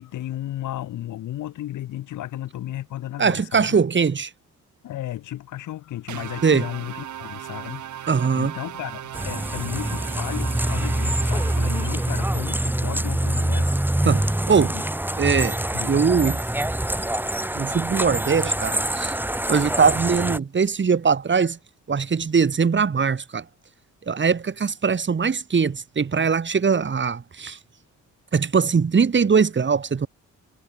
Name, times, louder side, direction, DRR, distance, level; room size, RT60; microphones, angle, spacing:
voice 1, 0.0-3.8 4.8-7.8 8.3-13.8 14.6-14.8 15.7-16.0, left 13 dB, 85° left, 6.6 m, -34 dB
voice 2, 3.2-4.3 6.4-6.7 8.1-8.5 14.0-14.7 15.2-15.6 15.8-16.4 17.5-19.1 19.5-21.6 21.9-23.4 24.1-27.6 28.3-30.1, right 5 dB, 40° right, 3.0 m, -21 dB
sound 1, 6.1-12.6, right 11 dB, 75° right, 5.8 m, -37 dB
sound 2, 9.1-20.4, right 1 dB, 5° right, 2.1 m, -25 dB
cardioid pair, 85°, 30 cm